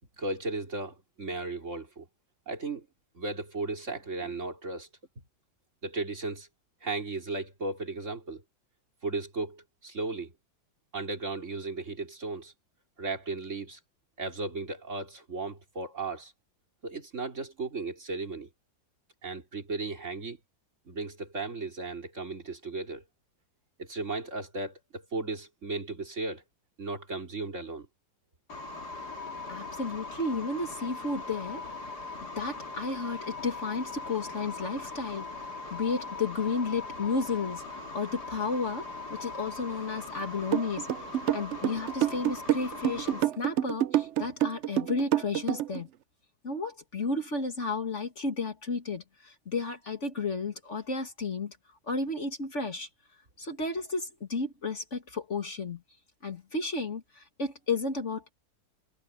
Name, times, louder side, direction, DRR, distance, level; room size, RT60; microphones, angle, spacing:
voice 1, 0.2-2.1 2.5-2.9 3.1-4.9 5.8-6.5 6.8-8.4 9.0-10.3 10.9-12.5 13.0-13.8 14.2-16.3 16.8-18.5 19.2-20.4 20.8-23.0 23.8-26.4 26.8-27.9, right 3 dB, 45° right, 3.4 m, -35 dB
sound 1, 28.5-43.2, left 3 dB, 70° left, 2.7 m, -40 dB
voice 2, 29.3-31.7 32.2-45.9 46.4-51.6 51.9-52.9 53.4-55.8 56.2-58.3, left 3 dB, 45° left, 2.4 m, -33 dB
sound 2, 40.5-45.8, right 12 dB, 65° right, 0.7 m, -27 dB
omnidirectional pair, 1.8 m